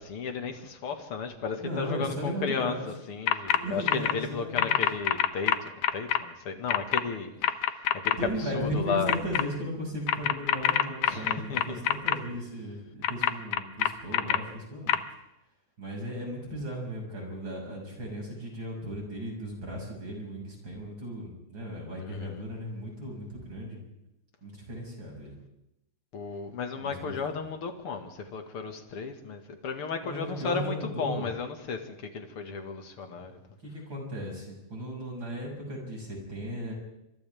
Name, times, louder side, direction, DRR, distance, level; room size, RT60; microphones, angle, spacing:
voice 1, 0.0-7.3 7.7-9.1 11.0-11.8 22.0-22.4 26.1-33.4, left 5 dB, 50° left, 5 dB, 2.4 m, -34 dB
voice 2, 1.6-2.9 3.6-4.8 8.2-15.0 15.8-23.8 24.4-25.3 26.7-27.4 30.0-31.3 33.6-36.7, equal, 35° right, -1 dB, 7.0 m, -36 dB
sound 1, 3.3-3.6 3.9-4.1 4.6-6.2 6.7-7.0 7.4-8.1 9.1-9.4 10.1-12.1 13.0-14.4 14.9-15.0, left 10 dB, 75° left, 1.4 m, -24 dB
28.5 x 26.0 x 3.5 m, 0.87 s
omnidirectional pair, 3.6 m